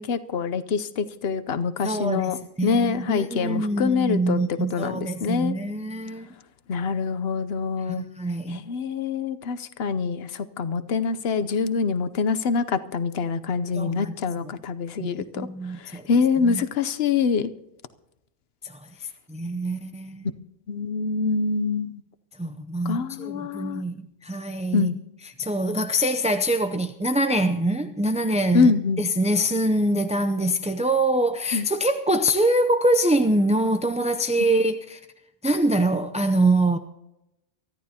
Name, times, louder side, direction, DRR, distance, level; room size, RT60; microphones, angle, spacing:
voice 1, 0.0-5.5 6.7-8.0 8.5-15.5 15.8-17.5 20.7-22.0 22.8-23.8 24.7-25.0 28.5-29.0 31.5-31.7 34.4-34.5, left 5 dB, 75° left, 1.0 m, -25 dB
voice 2, 1.8-6.3 7.9-8.6 13.7-14.1 15.0-16.0 16.4-16.6 19.3-20.3 22.4-24.0 24.2-25.0 25.4-28.7 29.0-35.0 35.4-36.8, right 1 dB, 10° right, 0.3 m, -24 dB
23.5 x 13.5 x 2.8 m
omnidirectional pair, 1.1 m